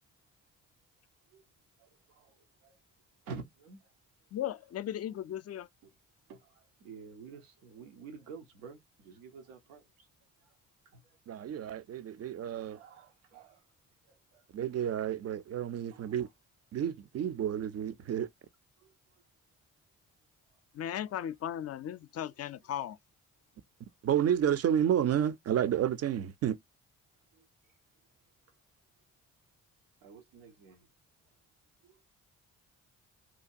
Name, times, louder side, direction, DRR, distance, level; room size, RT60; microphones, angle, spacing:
voice 1, 1.8-2.8 3.2-3.9 5.8-5.9 6.3-10.1 10.4-10.6 10.9-11.2 12.2-12.3 12.7-13.7 14.0-14.4 15.9-16.3 18.8-19.2 20.5-20.6 27.3-27.5 30.0-30.9 31.8-32.0, right 5 dB, 90° right, 0.7 m, -50 dB
voice 2, 4.3-5.7 20.7-23.0, left 10 dB, 40° left, 0.4 m, -37 dB
voice 3, 11.3-12.8 14.5-16.3 16.7-18.3 24.0-26.6, right 9 dB, 40° right, 0.4 m, -30 dB
2.8 x 2.2 x 2.5 m
hypercardioid pair, 40°, 39 cm